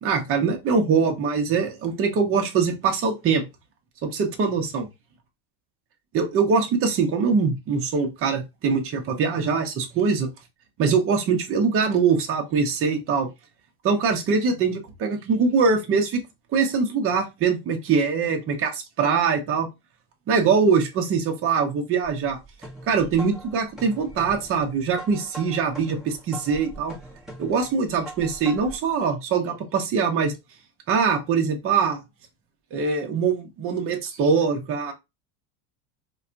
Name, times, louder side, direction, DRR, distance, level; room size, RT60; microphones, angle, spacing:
voice 1, 0.0-3.4 4.0-4.9 6.1-10.3 10.8-13.3 13.8-16.2 16.5-18.7 19.0-19.7 20.3-22.4 22.9-26.9 27.4-30.3 30.9-32.0 32.7-34.9, right 5 dB, 30° right, 0.8 m, -23 dB
sound 1, 22.0-28.9, right 1 dB, ahead, 0.9 m, -42 dB
4.2 x 2.2 x 2.5 m
cardioid pair, 150°, 46 cm